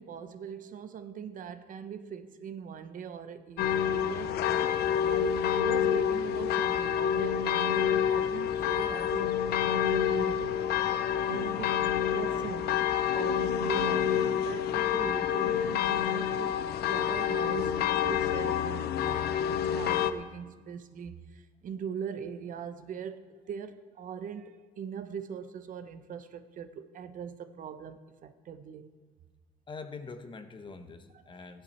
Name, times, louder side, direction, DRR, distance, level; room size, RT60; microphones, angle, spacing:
voice 1, 0.0-4.4 5.1-10.5 11.3-11.8 12.1-28.9 31.3-31.5, right 7 dB, 55° right, 0.8 m, -41 dB
sound 1, 3.6-20.1, left 9 dB, 70° left, 0.7 m, -28 dB
voice 2, 29.7-31.6, left 4 dB, 30° left, 1.0 m, -44 dB
14.5 x 10.5 x 4.3 m
cardioid pair, 110°, 17 cm